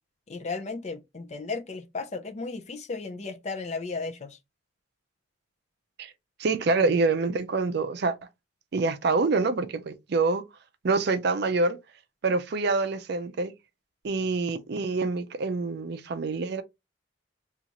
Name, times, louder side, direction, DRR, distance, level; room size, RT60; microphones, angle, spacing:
voice 1, 0.3-4.4, left 4 dB, 35° left, 0.4 m, -35 dB
voice 2, 6.4-8.1 8.7-10.5 10.8-11.8 12.2-13.5 14.0-16.6, right 3 dB, 55° right, 0.4 m, -26 dB
3.9 x 2.4 x 2.9 m
head